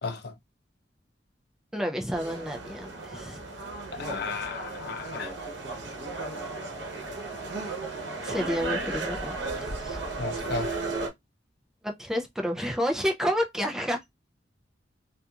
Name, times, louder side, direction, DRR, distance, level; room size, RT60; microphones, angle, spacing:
voice 1, 0.0-0.3 3.9-5.3 10.2-10.7, left 4 dB, 60° left, 0.5 m, -34 dB
voice 2, 1.7-3.4 8.2-10.0 11.8-14.0, equal, 5° right, 0.3 m, -30 dB
sound 1, 2.1-11.1, right 3 dB, 85° right, 0.8 m, -35 dB
2.7 x 2.4 x 2.3 m
head